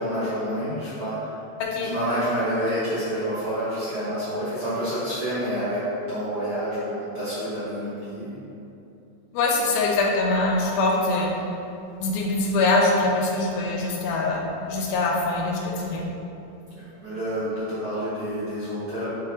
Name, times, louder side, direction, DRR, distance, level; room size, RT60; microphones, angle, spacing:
voice 1, 0.0-1.4 1.8-8.3 16.7-19.1, equal, 55° right, -13 dB, 1.5 m, -28 dB
voice 2, 1.6-1.9 9.3-11.3 12.0-16.1, left 2 dB, 85° left, -1 dB, 2.6 m, -23 dB
6.6 x 5.6 x 2.8 m, 2.8 s
omnidirectional pair, 4.2 m